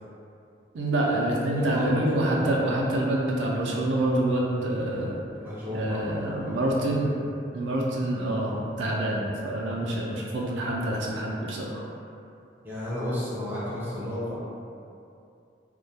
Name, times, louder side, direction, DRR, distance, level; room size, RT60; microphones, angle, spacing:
voice 1, 0.7-5.2 5.7-7.2 7.5-11.9, right 1 dB, 80° right, -3 dB, 0.4 m, -26 dB
voice 2, 1.5-1.9 5.4-6.0 6.4-6.8 12.6-14.4, left 1 dB, 10° right, -9 dB, 0.5 m, -32 dB
2.2 x 2.1 x 2.7 m, 2.5 s
head